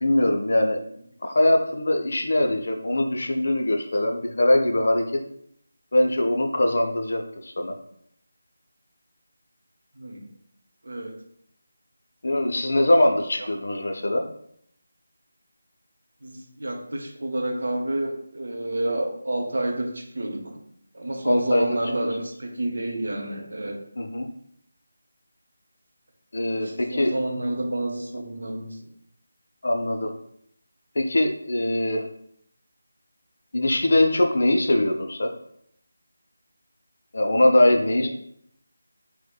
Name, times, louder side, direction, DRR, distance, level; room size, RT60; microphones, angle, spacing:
voice 1, 0.0-0.8 1.2-5.0 5.9-7.8 12.2-14.3 21.2-21.8 24.0-24.3 26.3-27.1 29.6-30.1 31.0-32.1 33.5-35.3 37.1-38.1, left 1 dB, 60° left, 3 dB, 0.5 m, -22 dB
voice 2, 9.9-10.3 10.8-11.2 12.4-12.5 13.4-13.5 16.2-20.6 20.9-23.8 26.4-28.9 37.6-38.1, right 1 dB, 70° right, 2 dB, 0.7 m, -29 dB
4.3 x 2.0 x 2.2 m, 0.69 s
figure-of-eight pair, 165°, 0 cm